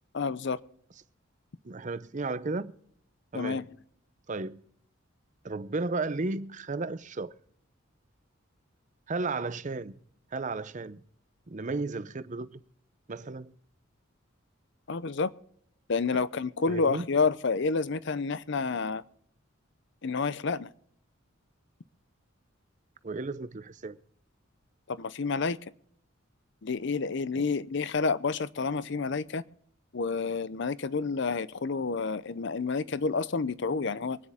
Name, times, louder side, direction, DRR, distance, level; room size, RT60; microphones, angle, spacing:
voice 1, 0.1-0.6 3.3-3.6 14.9-15.3 15.9-19.0 20.0-20.7 24.9-25.6 26.6-29.4 29.9-34.2, left 4 dB, 60° left, 0.6 m, -29 dB
voice 2, 1.6-2.7 3.3-3.7 4.3-4.6 5.4-7.3 9.1-9.9 10.3-11.0 11.5-12.6 13.1-13.5 16.7-17.1 23.0-24.0 27.4-27.5, right 3 dB, 40° right, 0.6 m, -34 dB
25.0 x 9.8 x 3.6 m
head